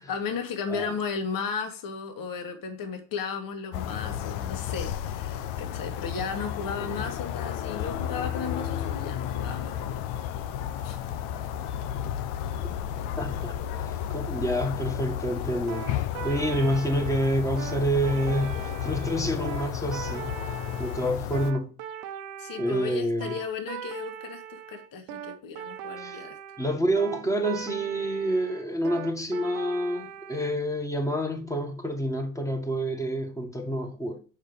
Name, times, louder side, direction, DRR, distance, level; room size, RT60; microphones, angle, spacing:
voice 1, 0.0-10.0 10.8-11.0 22.4-26.4, left 6 dB, 50° left, 1.9 m, -35 dB
sound 1, 3.7-21.5, left 10 dB, 75° left, 0.9 m, -32 dB
voice 2, 13.2-20.3 20.8-21.7 22.6-23.3 26.0-26.2 26.6-34.2, equal, 5° left, 1.6 m, -28 dB
sound 2, 15.7-30.5, right 10 dB, 70° right, 1.1 m, -40 dB
6.5 x 5.1 x 5.2 m
supercardioid pair, 80°, 43 cm